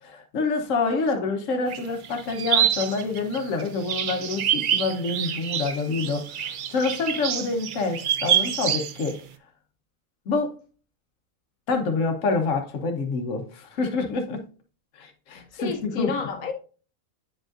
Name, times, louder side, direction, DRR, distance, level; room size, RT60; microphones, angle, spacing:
voice 1, 0.0-9.2 10.3-10.6 11.7-14.4 15.0-16.1, left 3 dB, 65° left, 1.3 m, -27 dB
voice 2, 0.9-1.3 15.3-16.5, left 5 dB, 90° left, 1.2 m, -32 dB
sound 1, 1.7-9.2, right 9 dB, 80° right, 0.4 m, -26 dB
8.6 x 5.0 x 2.5 m
omnidirectional pair, 1.4 m